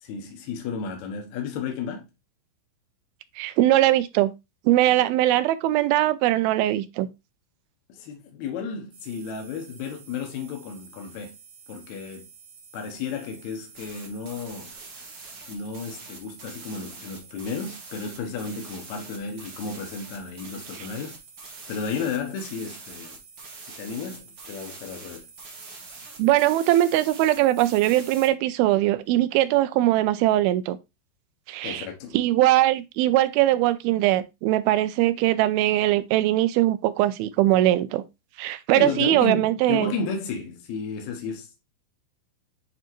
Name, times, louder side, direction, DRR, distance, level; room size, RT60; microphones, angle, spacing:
voice 1, 0.0-2.1 7.9-11.3 11.7-12.3 12.7-14.7 15.5-21.2 21.7-23.2 23.8-25.3 31.6-32.2 38.8-41.6, left 5 dB, 75° left, 1.7 m, -33 dB
voice 2, 3.4-4.3 4.7-7.1 26.2-30.8 31.5-31.9 32.1-38.0 38.4-40.0, right 15 dB, 85° right, 2.4 m, -21 dB
sound 1, 8.9-28.3, right 4 dB, 50° right, 1.8 m, -45 dB
9.3 x 3.4 x 3.0 m
omnidirectional pair, 4.4 m